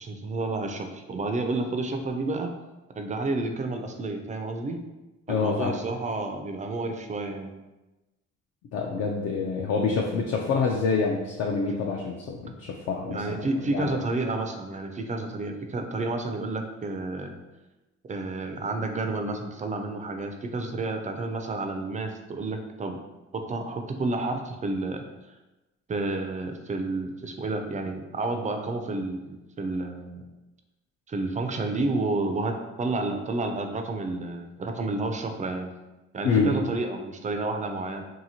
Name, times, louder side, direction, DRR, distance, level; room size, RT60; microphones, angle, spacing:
voice 1, 0.0-2.5 2.9-4.8 5.3-7.5 13.1-17.4 18.1-23.0 23.3-25.0 25.9-30.3 31.1-35.7 36.1-38.0, right 2 dB, 25° right, 5 dB, 0.3 m, -30 dB
voice 2, 5.3-5.8 8.7-13.4 13.7-13.9 36.2-36.6, left 4 dB, 55° left, 0 dB, 0.4 m, -26 dB
2.8 x 2.7 x 2.7 m, 1.1 s
cardioid pair, 90°, 30 cm